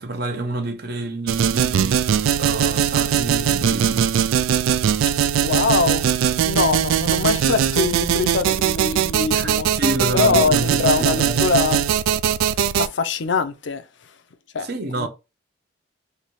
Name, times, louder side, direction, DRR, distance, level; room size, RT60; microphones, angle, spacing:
voice 1, 0.0-4.1 9.3-11.5 14.6-15.1, right 2 dB, 50° right, 0.7 m, -28 dB
sound 1, 1.3-12.9, right 9 dB, 90° right, 0.3 m, -20 dB
voice 2, 5.4-6.1 6.4-9.7 10.1-11.8 12.8-13.8 14.5-14.7 15.0-15.1, left 4 dB, 65° left, 0.5 m, -22 dB
3.2 x 2.3 x 4.1 m
head